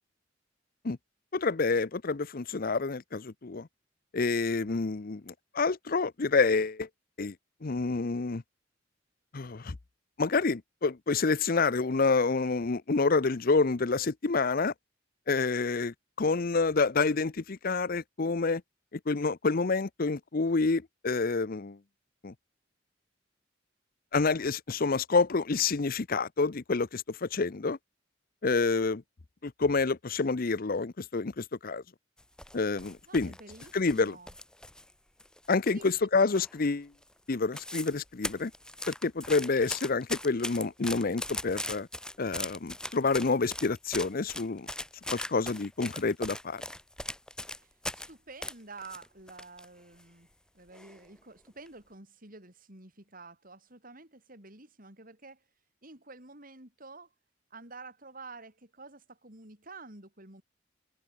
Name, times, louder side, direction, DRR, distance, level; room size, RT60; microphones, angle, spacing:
voice 1, 1.3-3.7 4.1-6.9 7.2-7.3 7.6-8.4 9.3-9.8 10.2-14.7 15.3-18.6 18.9-21.8 22.2-22.3 24.1-27.8 28.4-29.0 29.4-31.8 32.5-33.3 33.7-34.2 35.5-36.9 37.3-38.5 38.9-41.9 42.2-44.7 45.1-46.6, left 4 dB, 50° left, 0.7 m, -28 dB
sound 1, 32.2-34.9 35.2-36.0 36.3-36.7 37.0-37.1 37.3-38.0 38.2-48.1 48.4-49.7 50.0-50.1 50.7-51.1 51.5-51.7, left 1 dB, 5° left, 1.0 m, -39 dB
voice 2, 33.0-34.3 35.7-35.9 47.6-50.3 50.5-55.4 55.8-57.1 57.5-60.4, right 3 dB, 45° right, 6.6 m, -49 dB
head